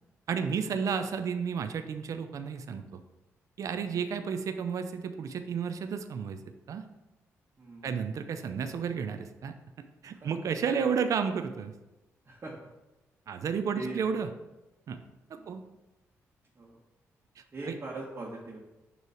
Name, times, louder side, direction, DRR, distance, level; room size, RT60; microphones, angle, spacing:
voice 1, 0.3-3.0 3.6-6.4 6.7-6.9 7.8-9.5 10.0-11.7 13.3-14.3 14.9-15.0 15.3-15.6 17.4-17.7, right 6 dB, 65° right, 8 dB, 0.5 m, -32 dB
voice 2, 7.6-8.1 10.1-10.3 12.2-12.7 13.7-14.0 15.3-15.6 16.5-16.8 17.5-18.6, right 2 dB, 40° right, -4 dB, 1.3 m, -42 dB
6.8 x 3.1 x 4.9 m, 1.0 s
supercardioid pair, 55°, 6 cm